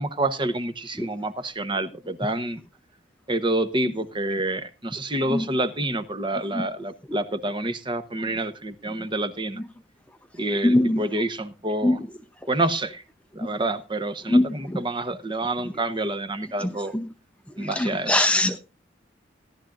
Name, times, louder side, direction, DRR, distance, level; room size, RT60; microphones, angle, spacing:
voice 1, 0.0-2.6 3.3-9.6 10.4-12.0 12.5-13.0 13.3-16.9 17.6-18.3, right 2 dB, 25° right, 11 dB, 1.0 m, -28 dB
voice 2, 10.6-11.0 11.8-12.1 14.3-14.8 16.6-17.1 17.6-18.6, left 1 dB, 5° left, 7 dB, 0.7 m, -22 dB
17.5 x 11.5 x 2.5 m, 0.28 s
head